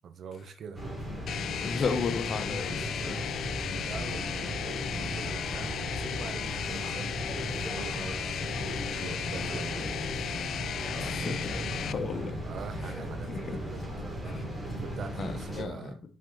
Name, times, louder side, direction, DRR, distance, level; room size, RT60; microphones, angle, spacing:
voice 1, 0.0-0.8 3.7-8.3 8.8-10.4 10.9-12.0 12.4-14.4 14.8-16.0, right 7 dB, 60° right, 0.8 m, -44 dB
sound 1, 0.7-15.6, right 1 dB, 15° right, 3.0 m, -37 dB
sound 2, 1.3-11.9, left 9 dB, 70° left, 0.3 m, -35 dB
voice 2, 1.6-3.2 11.0-11.5 11.8-12.4 12.8-12.9 13.3-13.6 14.3-14.4 14.7-14.8 15.2-15.9, left 5 dB, 50° left, 1.1 m, -34 dB
6.2 x 4.4 x 4.0 m
cardioid pair, 90°, 0 cm